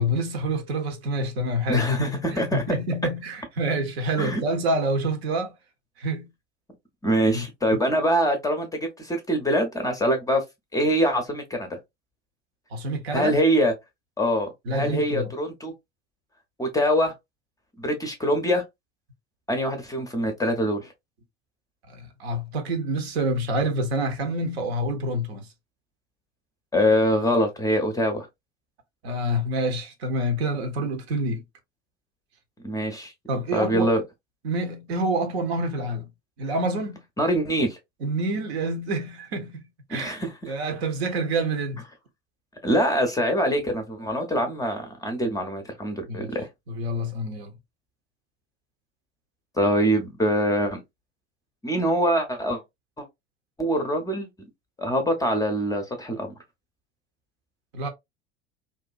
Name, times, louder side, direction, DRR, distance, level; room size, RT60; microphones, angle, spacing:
voice 1, 0.0-1.9 2.3-5.5 6.0-6.3 7.3-7.4 12.7-13.4 14.6-15.3 21.9-25.5 29.0-31.4 33.3-33.9 34.4-36.1 36.4-37.0 38.0-41.8 46.1-46.3 46.7-47.5 57.7-57.9, right 1 dB, 65° right, 0.8 m, -27 dB
voice 2, 1.7-2.6 4.2-4.4 7.0-10.4 10.7-11.8 13.1-13.7 14.2-15.7 16.6-17.1 17.8-18.6 19.5-20.8 26.7-28.3 32.6-33.1 33.5-34.0 37.2-37.8 39.9-40.5 42.6-46.5 49.6-50.8 51.6-52.6 53.0-53.1 53.6-54.3 54.8-56.3, equal, 10° left, 0.6 m, -24 dB
2.6 x 2.2 x 2.3 m
figure-of-eight pair, 75°, 35 cm